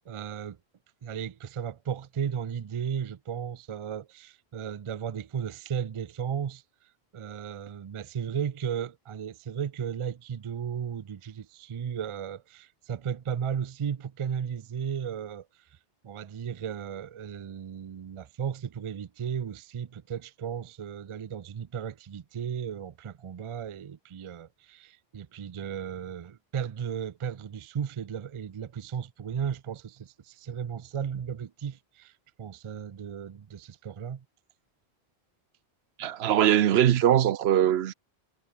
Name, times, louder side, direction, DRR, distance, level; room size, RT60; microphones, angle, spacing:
voice 1, 0.1-0.6 1.0-6.6 7.1-15.4 16.0-32.1 32.4-34.2, right 8 dB, 45° right, 0.4 m, -35 dB
voice 2, 36.0-37.9, right 11 dB, 85° right, 0.9 m, -22 dB
omnidirectional pair, 1.0 m